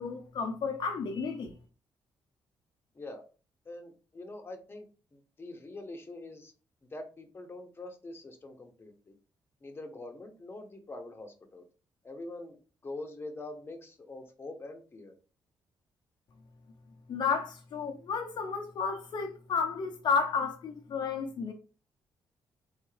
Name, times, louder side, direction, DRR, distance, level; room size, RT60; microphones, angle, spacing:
voice 1, 0.0-1.5 17.1-21.5, left 5 dB, 60° left, 0.7 m, -32 dB
voice 2, 3.6-4.8 5.1-6.5 6.9-9.1 9.6-11.6 12.0-12.6 12.8-15.1, left 2 dB, 25° left, 1.0 m, -44 dB
4.0 x 3.5 x 3.3 m
cardioid pair, 100°, 9 cm